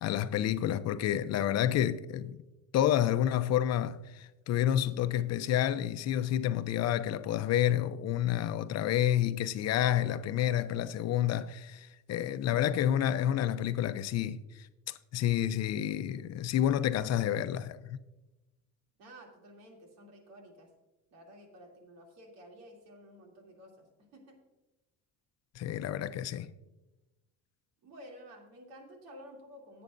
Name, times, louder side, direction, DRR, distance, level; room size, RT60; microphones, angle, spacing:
voice 1, 0.0-2.4 2.7-14.7 15.1-18.0 25.6-26.5, left 11 dB, 50° left, 0.6 m, -29 dB
voice 2, 19.0-20.7 21.1-24.4 27.8-29.8, equal, 85° right, 2.9 m, -52 dB
17.5 x 8.5 x 2.6 m
cardioid pair, 140°, 34 cm